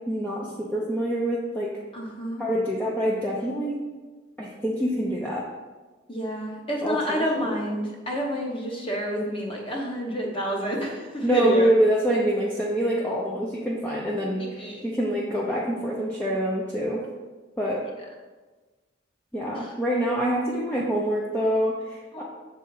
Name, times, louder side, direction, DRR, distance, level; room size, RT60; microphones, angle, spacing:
voice 1, 0.1-1.7 2.4-3.7 4.4-5.4 6.8-7.2 11.2-17.0 17.6-17.8 19.3-22.2, right 1 dB, 10° left, -5 dB, 0.6 m, -25 dB
voice 2, 1.9-2.5 6.1-11.7 14.4-14.9 19.5-19.7 22.1-22.2, equal, 30° left, -1 dB, 1.0 m, -29 dB
6.4 x 4.1 x 4.0 m, 1.3 s
head